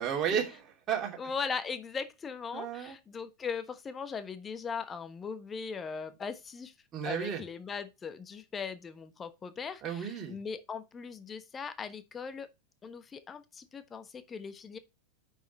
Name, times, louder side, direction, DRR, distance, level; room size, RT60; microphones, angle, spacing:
voice 1, 0.0-1.2 2.5-2.9 6.9-7.4 9.8-10.4, right 8 dB, 30° right, 2.9 m, -33 dB
voice 2, 1.2-6.7 7.0-12.5 12.8-14.8, left 5 dB, 20° left, 1.1 m, -39 dB
9.2 x 6.6 x 3.2 m
figure-of-eight pair, 90°, 0 cm